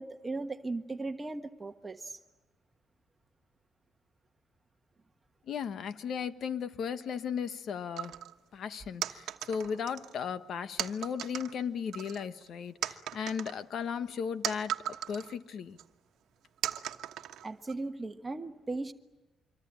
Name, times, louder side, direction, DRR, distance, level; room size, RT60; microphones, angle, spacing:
voice 1, 0.0-2.2 17.4-18.9, right 3 dB, 25° right, 1.3 m, -37 dB
voice 2, 5.5-8.1 8.5-14.7 15.1-15.8, left 7 dB, 65° left, 1.2 m, -36 dB
sound 1, 8.0-8.3 9.0-10.2 10.8-11.5 11.9-12.5 12.8-15.3 15.8-15.9 16.6-17.7, right 11 dB, 80° right, 1.1 m, -37 dB
26.0 x 23.0 x 8.8 m
cardioid pair, 90°, 0 cm